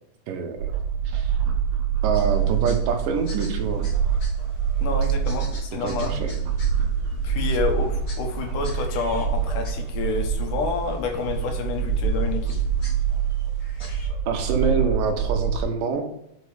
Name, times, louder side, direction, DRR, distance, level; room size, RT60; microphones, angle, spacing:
voice 1, 0.3-0.7 1.1-1.4 2.0-3.9 5.8-6.3 14.3-16.1, right 5 dB, 90° right, 5 dB, 2.6 m, -26 dB
sound 1, 0.6-15.6, right 7 dB, 65° right, 1.9 m, -25 dB
sound 2, 2.1-14.1, left 2 dB, 40° left, 1.2 m, -48 dB
voice 2, 4.8-6.2 7.2-12.6, left 4 dB, 75° left, 3 dB, 2.6 m, -29 dB
5.8 x 5.3 x 4.9 m, 0.80 s
omnidirectional pair, 3.8 m